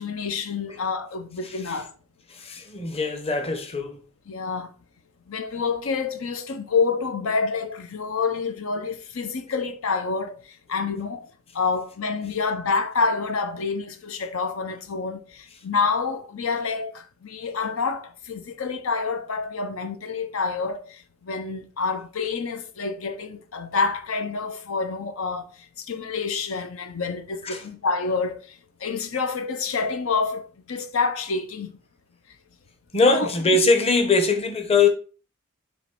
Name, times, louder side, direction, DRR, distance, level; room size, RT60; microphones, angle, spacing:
voice 1, 0.0-1.9 4.3-4.7 5.3-31.8 32.3-32.4 33.0-33.6, left 4 dB, 85° left, 0.7 m, -28 dB
voice 2, 1.4-1.8 2.3-4.0 27.5-27.6 32.9-34.9, left 3 dB, 30° left, 0.9 m, -22 dB
7.1 x 3.1 x 4.5 m
head